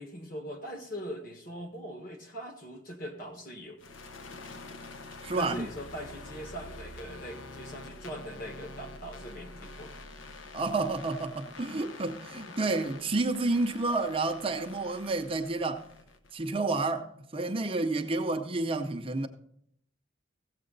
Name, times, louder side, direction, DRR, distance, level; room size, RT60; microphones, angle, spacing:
voice 1, 0.0-3.8 5.3-9.9 12.5-12.6, equal, 45° left, 1.6 m, -41 dB
sound 1, 3.8-16.6, left 2 dB, 85° left, 0.9 m, -47 dB
voice 2, 5.2-5.7 10.5-15.8 16.3-19.3, right 3 dB, 30° right, 0.6 m, -30 dB
15.5 x 7.5 x 3.9 m
head